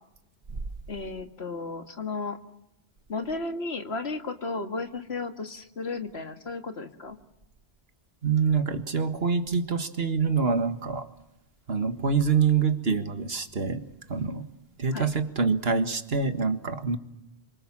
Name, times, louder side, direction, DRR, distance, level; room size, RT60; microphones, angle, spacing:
voice 1, 0.9-2.4 3.1-7.2 14.9-15.1, left 3 dB, 70° left, 2.2 m, -34 dB
voice 2, 8.2-11.1 11.7-14.5 14.8-17.0, right 5 dB, 65° right, 1.9 m, -26 dB
27.5 x 25.5 x 7.4 m
omnidirectional pair, 1.1 m